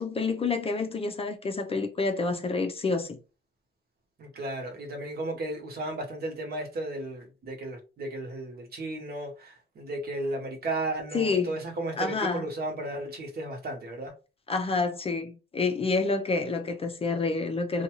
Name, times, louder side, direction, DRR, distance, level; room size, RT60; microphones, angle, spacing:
voice 1, 0.0-3.2 11.1-11.5 12.0-12.4 14.5-17.8, left 4 dB, 30° left, 0.4 m, -28 dB
voice 2, 4.2-14.1, right 2 dB, 50° right, 1.0 m, -34 dB
2.6 x 2.2 x 2.9 m
cardioid pair, 90°, 20 cm